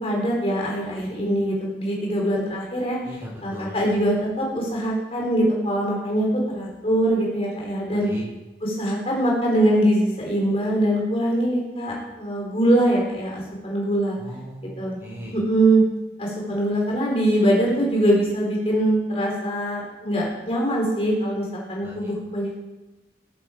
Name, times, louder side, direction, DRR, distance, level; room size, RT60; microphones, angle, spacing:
voice 1, 0.0-3.0 3.4-8.1 8.6-14.2 14.8-15.0 15.3-15.8 16.2-22.6, right 1 dB, 35° left, -2 dB, 3.4 m, -23 dB
voice 2, 3.0-3.8 8.0-8.2 14.2-14.7 15.0-15.3 21.8-22.1, equal, 15° right, -4 dB, 4.6 m, -38 dB
18.0 x 10.0 x 4.9 m, 1.1 s
head